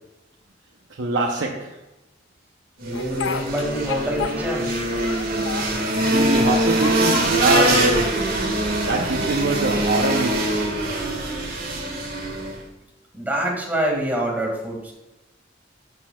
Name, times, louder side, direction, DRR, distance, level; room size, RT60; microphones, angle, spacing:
voice 1, 1.0-1.8 6.0-8.3 8.9-10.6, right 2 dB, 80° right, 0.7 m, -24 dB
voice 2, 2.8-4.7 13.1-14.9, right 1 dB, 10° right, 2.0 m, -26 dB
sound 1, 2.8-12.6, right 1 dB, 55° right, 1.7 m, -23 dB
Speech, 2.9-4.7 5.0-6.4 6.7-7.7 8.3-9.1, left 6 dB, 80° left, 0.6 m, -32 dB
12.0 x 6.1 x 2.3 m
head